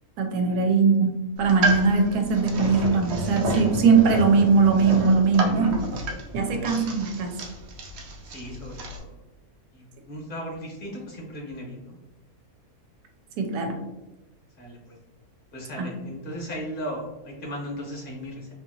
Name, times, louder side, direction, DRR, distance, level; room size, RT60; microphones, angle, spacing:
voice 1, 0.2-5.9 6.3-7.4 13.4-13.8 15.8-15.9, right 4 dB, 85° right, 3 dB, 1.1 m, -21 dB
sound 1, 1.4-9.0, right 2 dB, 65° right, 0.6 m, -30 dB
voice 2, 6.4-7.0 8.2-9.2 9.7-12.0 14.6-15.0 15.5-18.5, equal, 40° left, -2 dB, 1.0 m, -37 dB
2.8 x 2.7 x 2.7 m, 1.1 s
omnidirectional pair, 1.6 m